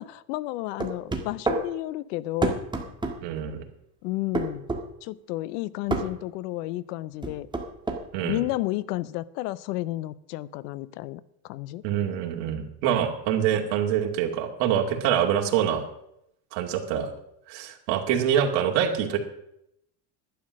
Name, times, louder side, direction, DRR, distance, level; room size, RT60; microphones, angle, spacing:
voice 1, 0.0-2.5 4.0-4.7 5.0-7.5 8.2-11.8, left 17 dB, 85° left, 20 dB, 0.8 m, -32 dB
sound 1, 0.8-1.6 2.4-3.2 4.3-4.8 5.9-6.1 7.2-8.0, right 3 dB, 10° right, 1.7 m, -27 dB
voice 2, 3.2-3.6 8.1-8.4 11.8-15.8 16.5-17.1 17.5-19.2, right 9 dB, 65° right, 3 dB, 2.4 m, -25 dB
11.5 x 9.6 x 6.3 m, 0.78 s
supercardioid pair, 125°, 46 cm